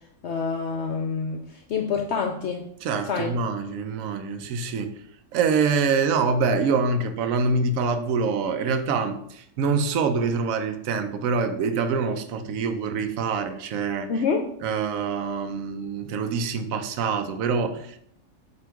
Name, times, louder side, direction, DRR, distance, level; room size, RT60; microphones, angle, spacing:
voice 1, 0.2-2.6 3.1-3.3 14.1-14.5, left 5 dB, 65° left, 4 dB, 0.8 m, -27 dB
voice 2, 2.8-4.9 5.3-14.1 14.6-18.0, right 4 dB, 75° right, 7 dB, 1.1 m, -25 dB
7.8 x 3.0 x 4.6 m, 0.68 s
omnidirectional pair, 1.4 m